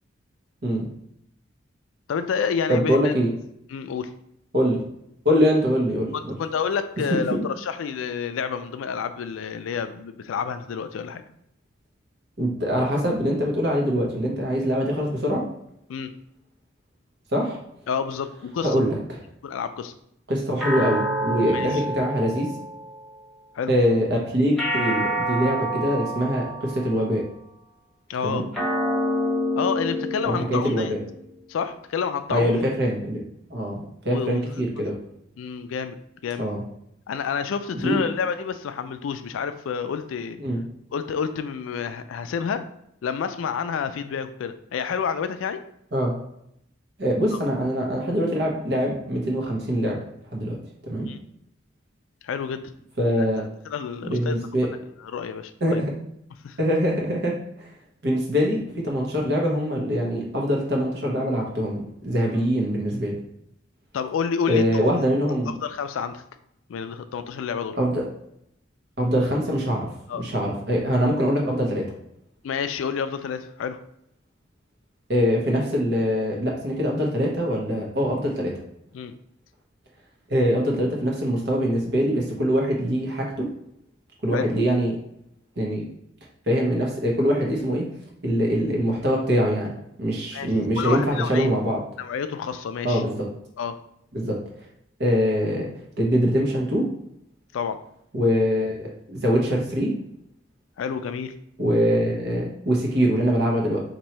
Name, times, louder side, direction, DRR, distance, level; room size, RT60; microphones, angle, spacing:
voice 1, 2.1-3.1 3.7-4.1 6.1-11.2 15.9-16.1 17.9-18.8 19.4-19.9 21.5-21.8 23.5-23.7 28.1-28.5 29.6-30.9 31.5-32.7 34.1-34.4 35.4-36.5 37.1-40.4 40.9-42.7 43.0-45.6 51.1-51.2 52.2-52.6 53.2-53.3 53.7-55.8 56.4-56.6 63.9-64.6 65.0-65.1 65.5-66.2 66.7-67.8 70.1-70.2 72.4-73.8 78.9-79.1 84.3-84.5 90.3-91.5 92.0-93.0 93.6-93.8 97.5-97.8 100.8-101.3, left 6 dB, 80° left, 10 dB, 0.3 m, -29 dB
voice 2, 2.7-3.3 4.5-4.8 5.2-6.4 12.4-15.4 17.3-17.6 18.6-19.2 20.3-22.5 23.7-27.2 28.2-28.5 30.2-31.0 32.3-33.2 33.5-34.9 36.4-36.6 37.7-38.0 40.4-40.6 45.9-46.1 47.0-50.0 50.3-50.6 50.8-51.1 53.0-53.4 54.0-54.7 55.6-55.9 56.6-57.3 57.6-57.7 58.0-63.1 64.5-65.5 67.8-68.0 69.0-71.9 75.1-78.5 80.3-83.5 84.2-85.0 85.6-85.8 86.5-87.9 88.2-89.7 90.0-91.8 92.8-93.1 94.1-94.4 95.0-95.7 96.0-96.9 98.1-99.9 101.6-103.8, equal, 55° right, -1 dB, 1.0 m, -23 dB
sound 1, 20.6-23.2 24.6-27.1 28.5-31.2, equal, ahead, 0.8 m, -28 dB
2.9 x 2.6 x 4.4 m, 0.76 s
head